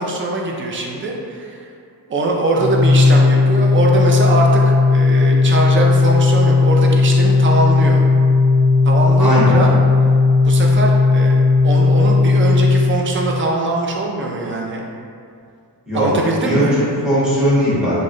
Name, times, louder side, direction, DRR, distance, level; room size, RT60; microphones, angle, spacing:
voice 1, 0.0-1.7 2.1-4.6 4.9-8.0 8.8-9.7 10.4-14.9 15.9-16.7, right 2 dB, 30° right, 0 dB, 0.4 m, -21 dB
Organ, 2.5-13.4, left 3 dB, 50° left, 0.5 m, -14 dB
voice 2, 9.2-9.6 15.9-16.1 16.4-18.0, equal, ahead, -10 dB, 1.2 m, -18 dB
3.0 x 2.7 x 2.6 m, 2.3 s
wide cardioid pair, 115°, 42 cm